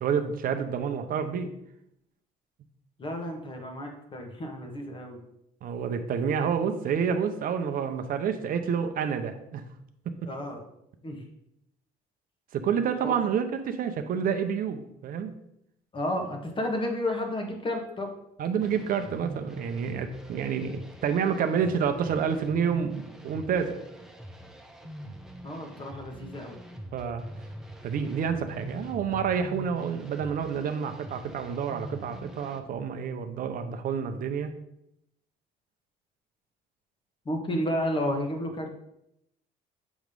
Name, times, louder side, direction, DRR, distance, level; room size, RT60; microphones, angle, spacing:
voice 1, 0.0-1.5 5.6-9.6 12.5-15.3 18.4-23.8 26.9-27.2 27.8-34.5, right 7 dB, 55° right, 7 dB, 0.7 m, -29 dB
voice 2, 3.0-5.2 10.3-10.6 11.0-11.2 13.0-13.1 15.9-18.1 25.4-26.6 37.2-38.7, left 1 dB, 30° left, 3 dB, 1.3 m, -31 dB
sound 1, 18.6-32.6, right 1 dB, 5° right, 0.8 m, -43 dB
7.2 x 3.1 x 5.3 m, 0.79 s
cardioid pair, 110°, 17 cm